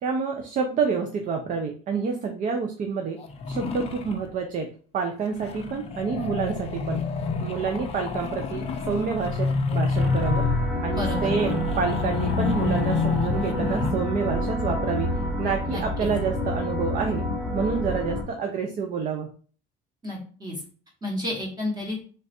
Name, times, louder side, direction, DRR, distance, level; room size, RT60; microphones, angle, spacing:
voice 1, 0.0-4.7 4.9-7.0 7.4-10.4 10.8-17.2 17.5-19.3, right 5 dB, 40° right, 4 dB, 0.5 m, -28 dB
sound 1, 3.2-4.3 5.3-13.9, left 4 dB, 30° left, 0.5 m, -28 dB
sound 2, 9.9-18.2, left 1 dB, 5° right, 0.8 m, -28 dB
voice 2, 10.9-11.3 15.7-16.1 20.0-20.6 21.0-22.0, left 1 dB, 20° right, -2 dB, 1.1 m, -31 dB
3.3 x 2.4 x 4.1 m, 0.42 s
cardioid pair, 155°, 20 cm